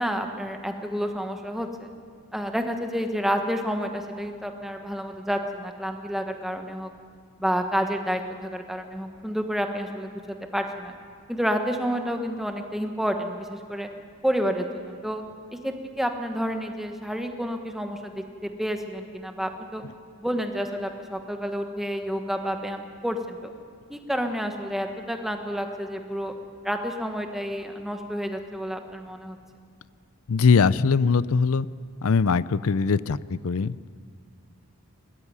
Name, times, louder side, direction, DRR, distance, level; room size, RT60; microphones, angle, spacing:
voice 1, 0.0-1.9 2.3-6.9 7.4-10.9 11.3-13.9 14.2-15.2 15.6-19.8 20.2-23.5 23.9-26.3 26.6-29.4, equal, ahead, 5 dB, 1.2 m, -29 dB
voice 2, 30.3-31.7 32.0-33.9, left 5 dB, 75° left, 18 dB, 0.5 m, -21 dB
20.5 x 13.5 x 9.6 m, 2.1 s
head